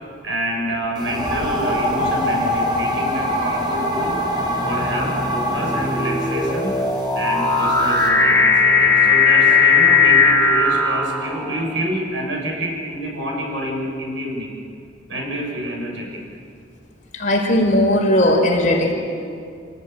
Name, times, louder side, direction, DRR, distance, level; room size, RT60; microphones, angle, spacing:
voice 1, 0.2-4.2 4.6-6.8 7.2-14.5 15.1-16.2, equal, 85° right, 0 dB, 7.1 m, -27 dB
sound 1, 0.9-8.1, equal, 25° right, 5.5 m, -24 dB
sound 2, 2.2-2.6 3.4-11.7, left 4 dB, 15° left, 3.7 m, -18 dB
voice 2, 17.1-18.9, left 1 dB, 45° left, 0 dB, 4.8 m, -17 dB
27.0 x 18.0 x 9.3 m, 2.4 s
head